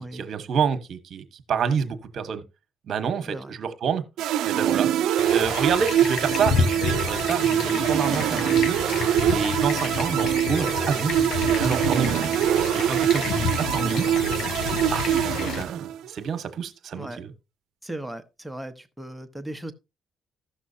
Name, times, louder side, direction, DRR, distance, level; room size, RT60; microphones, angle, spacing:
voice 1, 0.0-2.4 2.8-4.0 4.4-4.9 5.3-8.8 9.2-12.3 12.7-14.1 14.9-15.1 15.3-17.3, right 6 dB, 60° right, 1.2 m, -28 dB
voice 2, 3.3-3.6 11.0-11.3 16.9-17.2 17.8-19.7, right 1 dB, 5° right, 1.0 m, -37 dB
sound 1, 4.2-16.1, right 11 dB, 85° right, 0.5 m, -24 dB
sound 2, 5.2-15.6, left 5 dB, 75° left, 1.0 m, -30 dB
15.0 x 6.1 x 2.7 m
cardioid pair, 90°, 0 cm